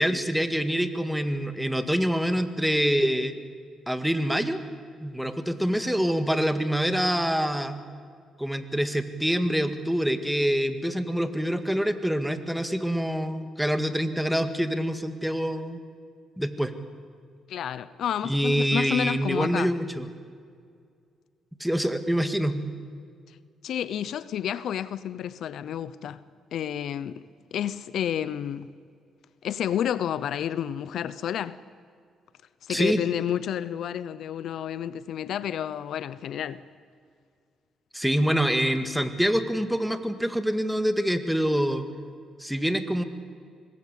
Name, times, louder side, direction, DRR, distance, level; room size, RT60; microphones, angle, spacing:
voice 1, 0.0-3.4 3.9-4.6 5.0-7.8 8.4-15.8 16.4-16.7 18.2-20.1 21.6-22.7 32.7-33.0 37.9-41.8 42.4-43.0, equal, ahead, 1.9 m, -25 dB
voice 2, 17.5-19.7 23.6-26.2 26.5-27.2 27.5-28.7 29.4-31.6 32.6-36.6, left 9 dB, 70° left, 0.7 m, -30 dB
25.0 x 20.0 x 8.4 m
cardioid pair, 90°, 0 cm